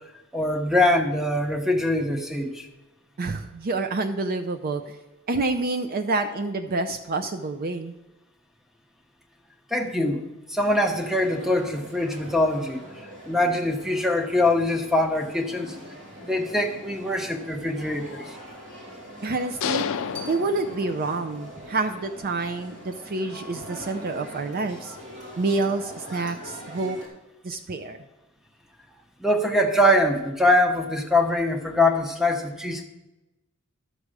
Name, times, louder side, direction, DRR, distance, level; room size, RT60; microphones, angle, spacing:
voice 1, 0.3-2.7 9.7-12.8 13.2-15.8 16.2-18.4 29.2-32.8, left 1 dB, ahead, 4 dB, 1.0 m, -23 dB
voice 2, 3.2-5.0 5.3-7.9 19.2-20.0 20.3-25.0 25.4-27.0 27.4-28.0, right 3 dB, 45° right, 8 dB, 0.5 m, -28 dB
sound 1, 10.6-27.1, equal, 60° right, 2.8 m, -43 dB
sound 2, 19.6-21.4, left 8 dB, 65° left, 0.4 m, -30 dB
12.5 x 4.8 x 6.5 m, 1.0 s
head